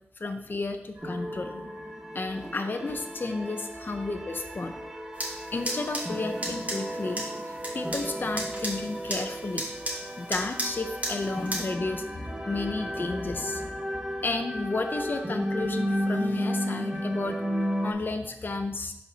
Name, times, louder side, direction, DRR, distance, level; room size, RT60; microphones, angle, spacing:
voice 1, 0.2-1.6 2.1-4.8 5.5-7.2 7.7-9.6 10.2-13.7 14.2-18.9, left 3 dB, 50° left, 5 dB, 0.6 m, -32 dB
sound 1, 0.9-14.4, right 1 dB, 80° right, 1.6 m, -50 dB
sound 2, 1.0-17.9, equal, 10° right, 0.9 m, -34 dB
sound 3, 5.1-11.6, right 1 dB, 35° right, 2.0 m, -36 dB
11.5 x 4.3 x 2.8 m, 0.83 s
wide cardioid pair, 60°, 4 cm